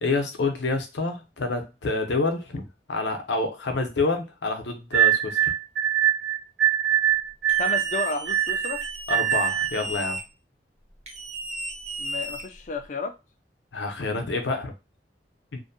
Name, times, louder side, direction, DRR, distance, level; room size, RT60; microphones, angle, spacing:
voice 1, 0.0-5.5 9.1-10.2 13.7-14.7 15.5-15.6, left 3 dB, 80° left, 0.6 m, -28 dB
sound 1, 4.9-9.8, right 10 dB, 80° right, 0.4 m, -23 dB
voice 2, 7.5-8.8 12.0-13.1, left 3 dB, 40° left, 0.4 m, -32 dB
sound 2, 7.5-10.2 11.1-12.9, right 1 dB, 35° right, 0.7 m, -35 dB
2.6 x 2.1 x 2.6 m
head